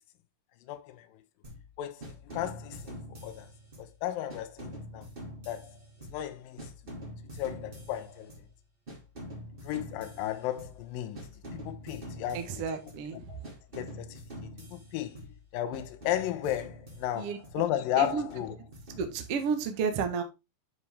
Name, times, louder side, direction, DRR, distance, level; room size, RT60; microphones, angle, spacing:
voice 1, 0.7-1.1 1.8-3.5 3.8-5.1 5.5-5.8 6.1-6.7 7.3-8.3 9.6-11.2 11.5-12.6 13.1-13.4 13.8-14.2 14.7-15.2 15.5-18.5, left 12 dB, 70° left, 2.3 m, -34 dB
sound 1, 1.4-1.7 2.0-4.0 4.3-6.3 6.6-8.5 8.9-10.9 11.1-13.1 13.4-15.4 15.7-17.6 18.0-19.7, equal, 20° right, 1.3 m, -45 dB
voice 2, 12.3-13.4 17.1-17.4 18.0-18.3 19.0-20.2, right 5 dB, 80° right, 1.3 m, -32 dB
9.9 x 4.8 x 3.5 m
omnidirectional pair, 4.8 m